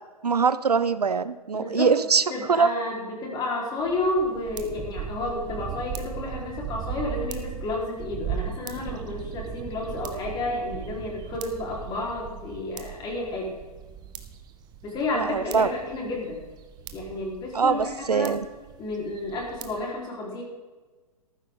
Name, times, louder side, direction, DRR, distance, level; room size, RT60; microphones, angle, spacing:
voice 1, 0.2-2.2 2.5-2.7 15.1-15.7 17.5-18.4, right 5 dB, 80° right, 14 dB, 0.7 m, -22 dB
voice 2, 1.5-1.9 2.3-13.6 14.8-16.4 16.9-18.4 18.8-20.4, left 2 dB, 20° left, -2 dB, 4.2 m, -31 dB
sound 1, 3.8-19.8, right 8 dB, 20° right, 1.0 m, -38 dB
14.0 x 12.5 x 3.8 m, 1.3 s
figure-of-eight pair, 120°, 20 cm